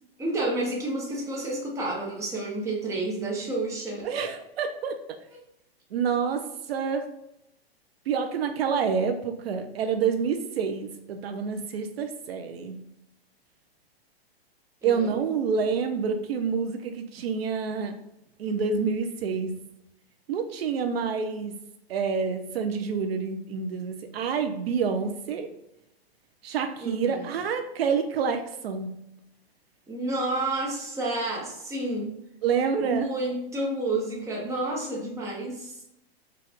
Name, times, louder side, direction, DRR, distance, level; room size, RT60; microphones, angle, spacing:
voice 1, 0.2-4.1 14.8-15.1 26.8-27.3 29.9-32.2 32.8-35.8, right 2 dB, 10° right, -3 dB, 0.9 m, -30 dB
voice 2, 4.0-5.0 5.9-6.4 6.7-7.0 8.1-12.8 14.8-17.9 18.4-19.5 20.3-21.5 21.9-25.5 26.4-28.9 32.4-33.1, right 6 dB, 70° right, 7 dB, 0.6 m, -28 dB
4.7 x 2.4 x 3.6 m, 0.82 s
hypercardioid pair, 135°, 31 cm